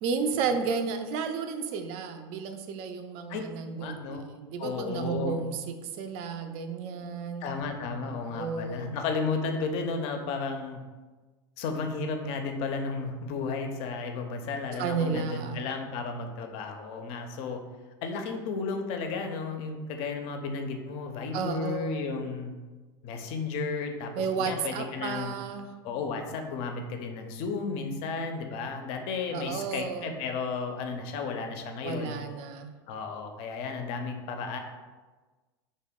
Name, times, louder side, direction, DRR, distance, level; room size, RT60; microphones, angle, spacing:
voice 1, 0.0-7.5 8.0-9.0 14.8-15.7 21.3-22.2 24.2-25.7 29.3-30.1 31.8-32.8, right 5 dB, 50° right, 7 dB, 0.4 m, -32 dB
voice 2, 3.7-4.2 4.6-5.4 7.4-10.8 11.6-17.6 18.0-22.5 23.0-24.1 24.4-25.3 25.8-32.2 32.9-34.6, left 4 dB, 50° left, 5 dB, 0.4 m, -33 dB
2.8 x 2.1 x 3.5 m, 1.3 s
hypercardioid pair, 85°, 13 cm